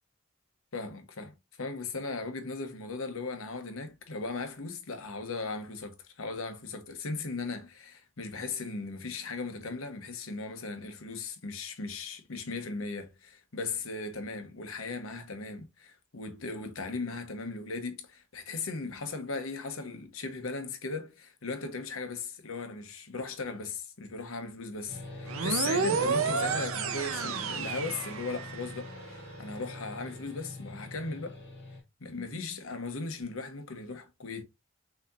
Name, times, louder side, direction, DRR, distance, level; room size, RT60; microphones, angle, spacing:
voice 1, 0.7-31.4 32.0-34.4, left 3 dB, 85° left, 1.0 m, -37 dB
sound 1, 24.9-31.8, left 2 dB, 55° left, 1.9 m, -44 dB
sound 2, 25.3-28.8, right 5 dB, 90° right, 0.7 m, -30 dB
6.1 x 2.9 x 2.5 m
head